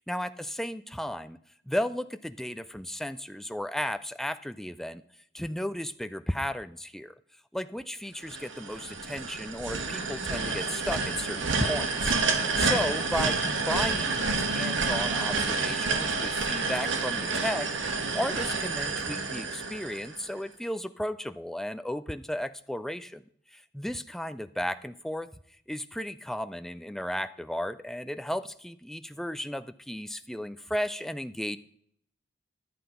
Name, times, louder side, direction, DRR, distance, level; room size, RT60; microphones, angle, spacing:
voice 1, 0.0-1.4 1.7-5.0 5.3-7.1 7.5-12.2 12.6-17.7 18.1-23.2 23.5-25.3 25.7-31.6, equal, ahead, 11 dB, 0.3 m, -34 dB
sound 1, 8.3-20.4, right 4 dB, 65° right, 1.3 m, -29 dB
11.0 x 7.8 x 5.1 m, 0.67 s
head